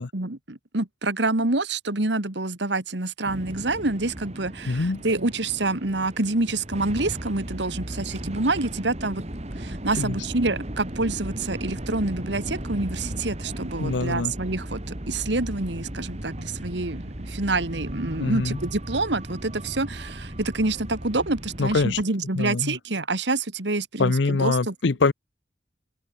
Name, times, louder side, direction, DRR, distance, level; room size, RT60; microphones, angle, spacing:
voice 1, 0.0-9.2 9.6-14.8 15.1-24.7, right 2 dB, 70° right, 2.1 m, -27 dB
sound 1, 3.2-22.0, right 1 dB, 35° right, 2.7 m, -36 dB
voice 2, 4.6-5.0 10.0-10.2 13.8-14.3 18.2-18.6 21.6-22.0 22.3-22.8 24.0-25.1, left 3 dB, 75° left, 0.7 m, -24 dB
open air
head